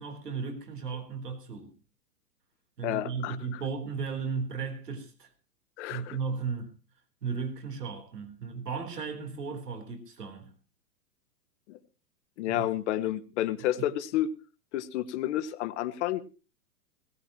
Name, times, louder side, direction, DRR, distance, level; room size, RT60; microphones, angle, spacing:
voice 1, 0.0-1.8 2.8-5.3 5.9-6.8 7.2-10.5 12.5-12.7 13.8-13.9, right 5 dB, 80° right, 3.8 m, -35 dB
voice 2, 2.8-3.6 5.8-6.2 11.7-11.8 12.4-14.3 14.7-16.2, left 13 dB, 50° left, 1.4 m, -30 dB
18.0 x 16.5 x 3.0 m
hypercardioid pair, 120°, 46 cm